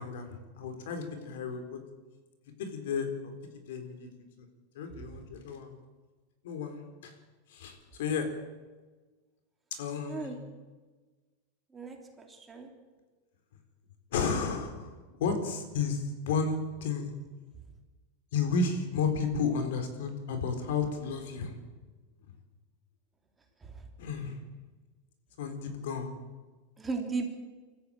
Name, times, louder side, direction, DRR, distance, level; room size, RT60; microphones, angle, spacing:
voice 1, 0.0-1.8 2.6-4.1 4.7-5.8 6.4-7.1 7.5-8.3 9.8-10.3 14.1-17.1 18.3-21.5 24.0-24.4 25.4-26.1, left 5 dB, 70° left, 6 dB, 4.2 m, -32 dB
voice 2, 11.7-12.7 26.8-27.3, right 4 dB, 15° right, 3 dB, 3.2 m, -36 dB
24.0 x 13.5 x 9.0 m, 1.3 s
supercardioid pair, 150°, 0 cm